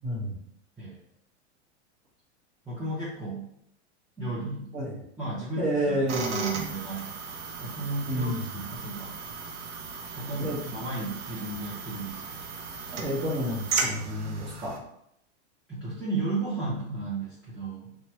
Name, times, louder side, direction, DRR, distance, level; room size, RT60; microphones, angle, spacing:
voice 1, 0.0-0.4 4.7-5.0 5.6-6.3 8.1-8.4 10.4-10.8 12.9-14.8, equal, 20° right, -5 dB, 1.1 m, -30 dB
voice 2, 2.6-3.5 4.2-4.7 5.2-7.2 7.6-9.1 10.1-12.5 15.7-17.9, right 2 dB, ahead, -12 dB, 0.7 m, -34 dB
sound 1, 6.1-14.8, right 4 dB, 75° right, 0.7 m, -35 dB
2.9 x 2.3 x 2.9 m, 0.73 s
supercardioid pair, 135°, 36 cm